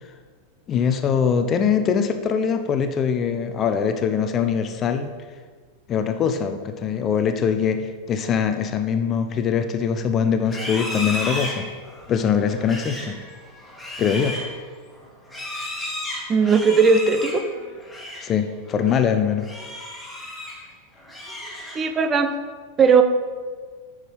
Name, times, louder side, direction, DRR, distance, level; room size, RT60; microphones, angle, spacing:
voice 1, 0.7-5.1 5.9-11.7 12.1-13.2 14.0-14.4 18.2-19.4, left 7 dB, 30° left, 8 dB, 0.7 m, -22 dB
Livestock farm animals working animals, 10.4-18.3 18.7-19.0 19.4-20.7 21.0-22.0, left 1 dB, 5° left, 2.4 m, -34 dB
voice 2, 16.3-17.4 21.7-22.3 22.8-23.0, right 5 dB, 20° right, 7 dB, 0.8 m, -17 dB
9.1 x 6.4 x 5.4 m, 1.5 s
figure-of-eight pair, 90°, 0 cm